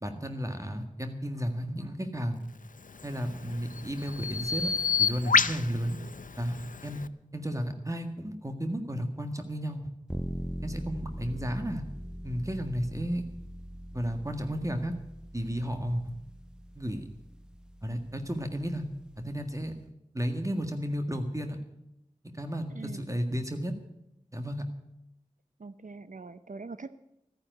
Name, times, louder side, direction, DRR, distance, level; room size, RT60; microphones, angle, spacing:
voice 1, 0.0-2.4 3.0-4.7 5.0-6.0 6.4-6.5 6.8-7.0 7.3-9.8 10.6-11.8 12.2-13.2 13.9-14.9 15.3-16.1 16.8-17.1 17.8-18.8 19.2-19.7 20.1-21.6 22.2-23.7 24.3-24.7, equal, 25° right, 6 dB, 1.8 m, -33 dB
Bird vocalization bird call bird song, 2.9-7.1, left 5 dB, 85° left, 0.5 m, -30 dB
sound 1, 10.1-19.8, equal, 5° right, 0.7 m, -42 dB
voice 2, 22.7-23.1 25.6-26.9, right 3 dB, 75° right, 13 dB, 0.6 m, -43 dB
14.0 x 10.0 x 7.8 m, 0.85 s
wide cardioid pair, 45°, 13 cm